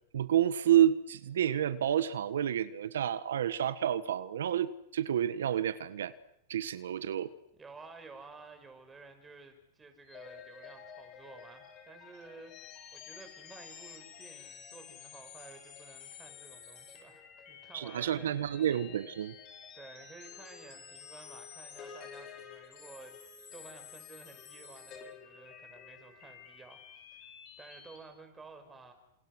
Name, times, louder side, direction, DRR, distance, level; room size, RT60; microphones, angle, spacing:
voice 1, 0.1-6.1 6.5-7.3 17.7-19.3, right 10 dB, 90° right, 13 dB, 1.4 m, -29 dB
voice 2, 7.6-18.5 19.7-23.2 23.5-27.3 27.6-28.9, right 3 dB, 15° right, 6 dB, 5.8 m, -53 dB
sound 1, 10.1-28.0, left 7 dB, 35° left, 7.0 m, -51 dB
30.0 x 27.5 x 6.4 m, 0.74 s
supercardioid pair, 140°, 0 cm